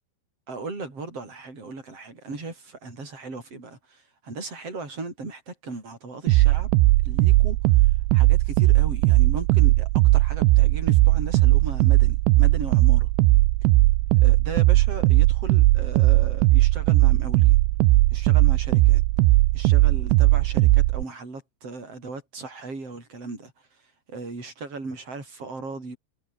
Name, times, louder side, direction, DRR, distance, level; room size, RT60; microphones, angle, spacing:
voice 1, 0.5-6.7 7.0-13.1 14.2-17.6 18.1-19.0 19.5-23.5 24.1-26.0, right 3 dB, 30° right, 9.0 m, -37 dB
sound 1, 6.3-21.0, right 19 dB, 85° right, 2.9 m, -18 dB
omnidirectional pair, 5.1 m